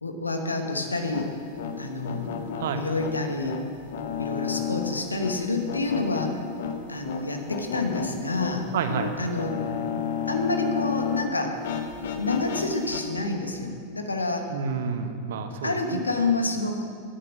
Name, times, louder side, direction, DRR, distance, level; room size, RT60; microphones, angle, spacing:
voice 1, 0.0-1.4 1.8-3.6 4.2-6.4 6.9-8.7 9.2-9.6 10.3-11.6 12.2-14.5 15.6-16.8, left 2 dB, 80° left, 5 dB, 1.2 m, -28 dB
sound 1, 1.0-11.3 11.6-13.0, left 7 dB, 55° left, 0.9 m, -32 dB
voice 2, 8.7-9.1 14.5-16.0, right 6 dB, 60° right, 8 dB, 0.9 m, -29 dB
11.0 x 9.0 x 6.3 m, 2.4 s
figure-of-eight pair, 90°, 0 cm